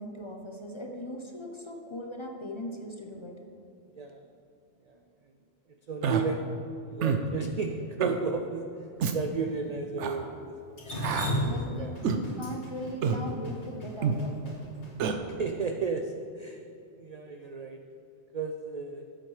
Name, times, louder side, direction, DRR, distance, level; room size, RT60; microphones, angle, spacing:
voice 1, 0.0-3.3 11.5-14.5, equal, 30° left, 2 dB, 0.7 m, -39 dB
voice 2, 5.9-8.7 9.1-10.8 11.3-12.0 15.4-16.6 17.0-17.8 18.3-19.0, right 5 dB, 55° right, 5 dB, 0.4 m, -34 dB
Human voice, 6.0-6.2 7.0-7.2 8.0-8.2 9.0-9.2 10.0-10.2 11.0-11.3 12.0-12.2 13.0-13.2 14.0-14.2 15.0-15.2, right 6 dB, 90° right, 1.0 m, -27 dB
Drip, 10.8-14.9, equal, 85° left, 2.1 m, -33 dB
13.0 x 7.6 x 3.2 m, 2.6 s
omnidirectional pair, 1.2 m